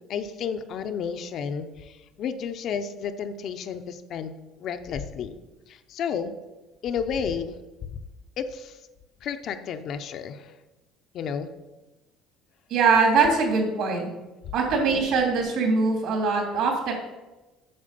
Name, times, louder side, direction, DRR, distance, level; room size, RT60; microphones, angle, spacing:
voice 1, 0.1-4.3 4.6-5.4 5.7-6.3 6.8-7.6 8.4-8.8 9.2-10.5 11.1-11.5, left 7 dB, 45° left, 8 dB, 0.7 m, -31 dB
voice 2, 12.7-14.1 14.5-16.9, right 4 dB, 55° right, 1 dB, 2.8 m, -22 dB
8.7 x 6.2 x 6.8 m, 1.1 s
cardioid pair, 165°, 0 cm